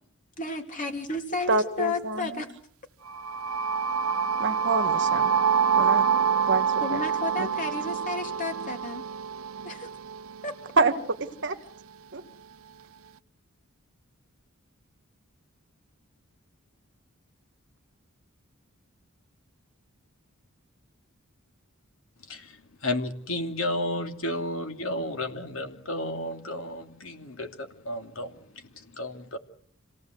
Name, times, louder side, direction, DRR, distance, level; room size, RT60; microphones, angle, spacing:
voice 1, 0.4-2.5 6.8-9.0 9.6-9.9 10.4-10.5, left 3 dB, 35° left, 4 dB, 3.3 m, -32 dB
voice 2, 1.5-2.5 4.4-5.3 5.8-6.0 6.5-7.0 7.4-7.5 10.8-11.6 12.1-12.2, right 3 dB, 55° right, 8 dB, 1.7 m, -27 dB
sound 1, 3.1-11.0, right 6 dB, 75° right, 1.0 m, -26 dB
voice 3, 22.8-28.3 28.7-29.4, left 1 dB, 65° left, 5 dB, 2.8 m, -32 dB
27.5 x 18.0 x 8.0 m, 0.63 s
head